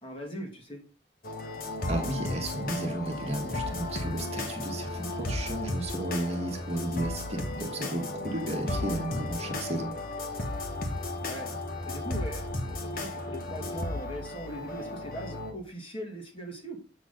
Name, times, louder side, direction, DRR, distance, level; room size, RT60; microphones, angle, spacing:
voice 1, 0.0-0.8 11.2-11.5 11.8-16.8, equal, 30° left, 1 dB, 2.1 m, -40 dB
sound 1, 1.2-15.5, left 2 dB, 50° left, 1.3 m, -34 dB
voice 2, 1.8-9.9, right 1 dB, 35° right, 2 dB, 1.5 m, -33 dB
7.7 x 6.1 x 3.7 m, 0.34 s
head